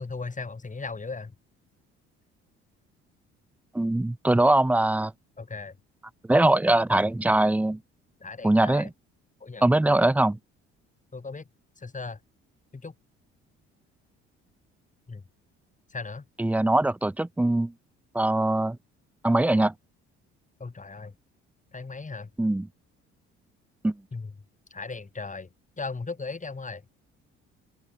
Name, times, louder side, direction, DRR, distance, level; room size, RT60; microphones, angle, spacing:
voice 1, 0.0-1.3 5.4-5.8 8.2-8.9 9.4-9.6 11.1-11.4 11.8-12.2 12.7-12.9 15.1-15.2 15.9-16.2 20.6-21.1 21.7-22.3 24.1-24.3 24.7-25.5 25.8-26.8, left 4 dB, 25° left, 4.1 m, -37 dB
voice 2, 3.7-5.1 6.3-7.8 8.4-8.9 9.6-10.4 16.4-17.7 18.1-18.8 19.2-19.7 22.4-22.7 23.8-24.0, right 1 dB, 5° right, 0.4 m, -22 dB
hypercardioid pair, 60°, 30 cm